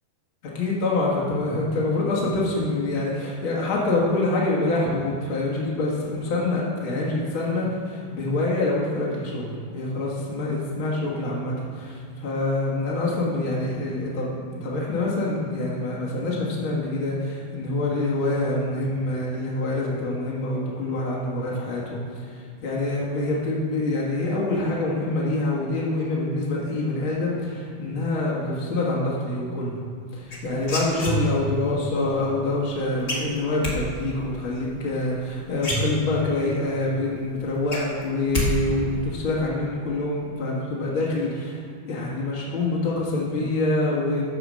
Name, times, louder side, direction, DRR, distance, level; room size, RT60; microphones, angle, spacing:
voice 1, 0.5-29.8 30.1-44.2, left 2 dB, 55° left, -4 dB, 1.4 m, -26 dB
sound 1, 30.3-31.6 33.1-33.8 35.2-35.3 35.6-36.4 36.8-36.9 37.2-38.5 38.7-39.2, equal, 30° left, 1.4 m, -27 dB
14.0 x 4.9 x 6.2 m, 2.2 s
omnidirectional pair, 4.5 m